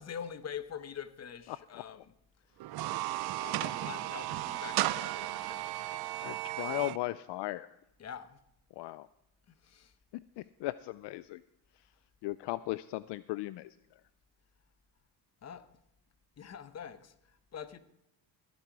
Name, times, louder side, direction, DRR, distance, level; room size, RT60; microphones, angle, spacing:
voice 1, 0.0-2.0 3.4-5.7 8.0-8.4 9.6-9.9 15.4-15.7 16.4-17.1 17.5-17.8, left 8 dB, 35° left, 0.9 m, -44 dB
voice 2, 1.5-2.0 6.2-7.7 8.8-9.1 10.1-11.4 12.2-13.8, left 17 dB, 65° left, 0.5 m, -37 dB
sound 1, 2.6-7.0, right 16 dB, 55° right, 0.6 m, -35 dB
14.5 x 10.5 x 4.7 m
cardioid pair, 110°, 46 cm